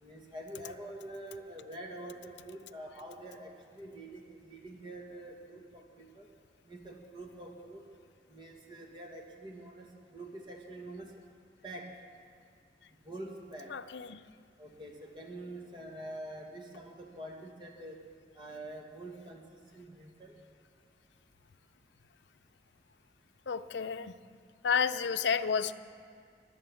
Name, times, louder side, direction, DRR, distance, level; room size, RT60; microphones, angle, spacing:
voice 1, 0.0-6.3 6.7-7.8 8.3-11.1 11.6-11.9 13.0-13.7 14.6-18.0 18.3-19.4 19.7-20.4, right 1 dB, 25° right, 1 dB, 1.6 m, -46 dB
voice 2, 13.7-14.2 23.5-24.1 24.6-25.7, left 6 dB, 85° left, 12 dB, 0.5 m, -31 dB
22.5 x 8.7 x 7.1 m, 2.4 s
head